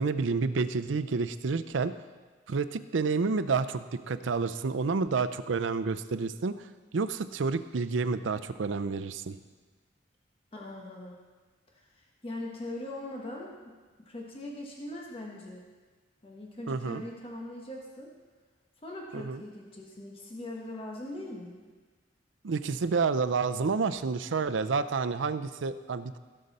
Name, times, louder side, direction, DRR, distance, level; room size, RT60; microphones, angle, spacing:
voice 1, 0.0-1.9 2.5-6.6 6.9-9.4 16.7-17.0 19.1-19.4 22.4-26.2, right 4 dB, 80° right, 12 dB, 0.5 m, -29 dB
voice 2, 10.5-11.2 11.7-13.8 14.0-15.6 16.2-18.1 18.8-21.6, left 1 dB, 30° left, -2 dB, 1.3 m, -41 dB
16.0 x 6.6 x 4.2 m, 1.4 s
head